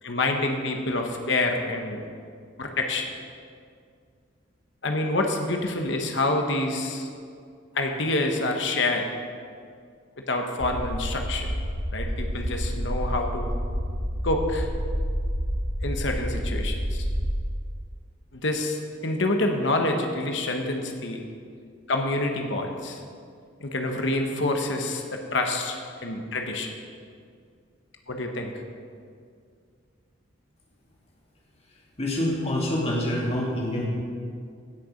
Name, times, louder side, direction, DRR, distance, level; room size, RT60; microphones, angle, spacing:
voice 1, 0.0-2.0 2.6-3.1 4.8-7.1 7.7-9.1 10.2-11.5 11.9-13.5 14.2-14.7 15.8-17.1 18.3-21.2 21.9-23.0 23.6-26.8 28.1-28.5, left 2 dB, 60° left, 3 dB, 1.1 m, -27 dB
sound 1, 10.6-17.4, equal, 80° right, 2.7 m, -29 dB
voice 2, 32.0-33.9, left 1 dB, 30° left, -3 dB, 2.3 m, -26 dB
16.5 x 6.8 x 5.1 m, 2.2 s
head